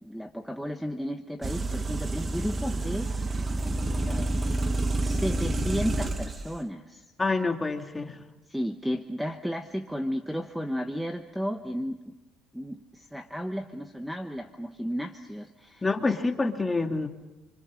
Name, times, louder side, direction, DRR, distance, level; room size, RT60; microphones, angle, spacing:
voice 1, 0.0-3.1 3.6-4.5 5.0-7.1 8.5-12.1 12.5-15.8, equal, ahead, 7 dB, 1.1 m, -33 dB
sound 1, 1.4-6.5, right 2 dB, 25° right, 1.6 m, -29 dB
voice 2, 7.2-8.2 15.8-17.1, left 3 dB, 15° left, 4 dB, 2.3 m, -27 dB
29.0 x 26.0 x 6.4 m, 1.1 s
cardioid pair, 125°, 0 cm